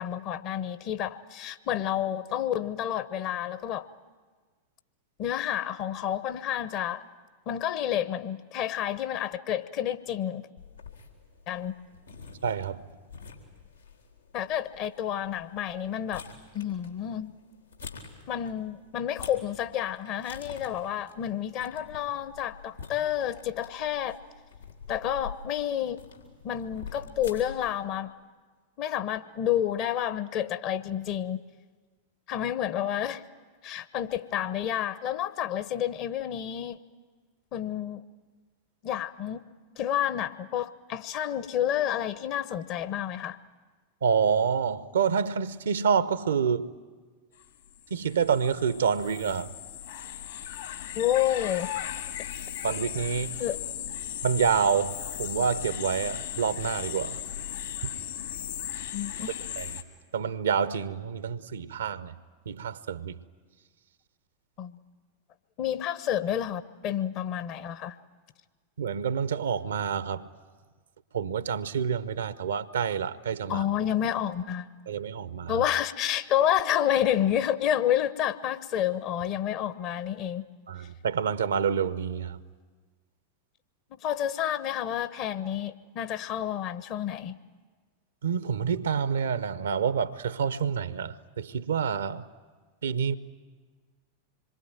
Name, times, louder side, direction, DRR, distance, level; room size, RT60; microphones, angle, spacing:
voice 1, 0.0-3.9 5.2-7.0 7.5-10.5 11.5-11.7 14.3-16.2 16.5-17.3 18.3-24.2 24.9-26.0 26.4-28.1 28.8-31.4 32.3-33.2 33.6-36.8 37.5-38.0 38.8-39.4 39.8-43.4 50.9-51.8 53.4-53.6 58.9-59.3 64.6-64.8 65.6-68.0 73.5-74.7 75.5-80.5 83.9-87.4, left 10 dB, 40° left, 1.0 m, -29 dB
sound 1, 10.6-27.7, left 5 dB, 80° left, 3.4 m, -47 dB
voice 2, 12.4-12.8 44.0-46.8 47.9-49.5 52.6-53.4 54.2-57.2 59.6-59.7 60.1-62.1 62.5-63.2 68.8-70.3 71.1-73.6 74.9-75.6 80.7-82.4 88.2-92.2 92.8-93.2, right 7 dB, 65° right, 0.8 m, -28 dB
sound 2, 47.4-47.5 47.7-59.8, left 10 dB, 60° left, 2.1 m, -37 dB
26.0 x 22.5 x 9.1 m
figure-of-eight pair, 90°, 0 cm